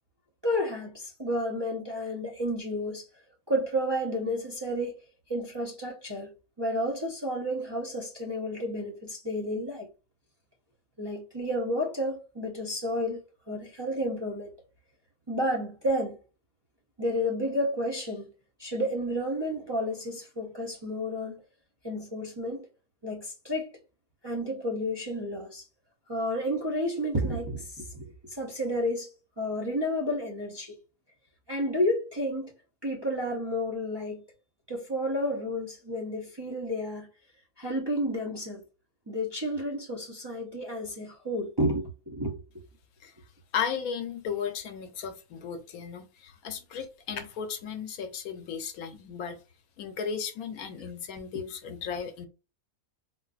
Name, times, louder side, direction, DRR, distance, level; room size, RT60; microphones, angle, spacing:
voice 1, 0.4-3.1 3.5-4.9 5.3-6.3 6.6-9.9 11.0-14.5 15.3-16.2 17.0-18.3 18.6-21.4 21.8-22.7 23.0-23.8 24.2-25.6 26.1-29.1 29.4-30.8 31.5-32.5 32.8-34.2 34.7-37.1 37.6-38.6 39.1-42.4, equal, 25° right, 0.5 m, -31 dB
voice 2, 43.5-49.4 49.8-52.3, left 7 dB, 80° left, 1.1 m, -35 dB
3.8 x 2.5 x 2.3 m
omnidirectional pair, 1.5 m